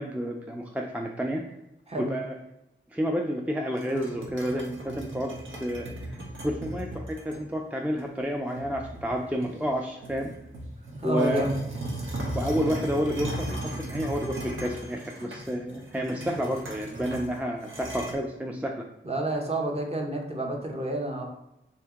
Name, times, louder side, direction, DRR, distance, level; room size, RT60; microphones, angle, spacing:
voice 1, 0.0-1.4 2.0-2.4 2.9-5.3 5.6-6.2 6.4-10.3 11.0-11.5 12.3-18.8, equal, 5° right, 1 dB, 0.4 m, -30 dB
sound 1, 3.7-7.4 8.0-8.1 8.6-9.7 10.0-18.1, right 1 dB, 75° right, 0.7 m, -37 dB
voice 2, 11.0-11.6 19.0-21.2, right 1 dB, 30° right, 0 dB, 0.8 m, -29 dB
2.8 x 2.7 x 3.6 m, 0.91 s
wide cardioid pair, 45°, 20 cm